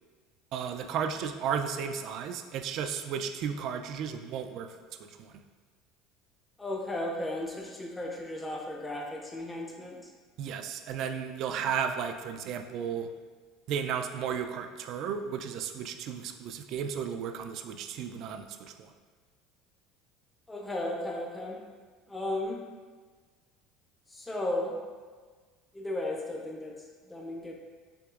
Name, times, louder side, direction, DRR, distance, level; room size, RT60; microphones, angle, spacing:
voice 1, 0.5-4.7 5.2-5.3 10.4-13.1 13.7-18.7, right 7 dB, 50° right, 7 dB, 0.3 m, -34 dB
voice 2, 6.6-10.0 20.5-21.6 22.1-22.6 24.1-24.8 25.7-26.8 27.1-27.5, left 1 dB, 10° left, 0 dB, 0.6 m, -35 dB
6.0 x 2.9 x 2.4 m, 1.5 s
cardioid pair, 145°, 0 cm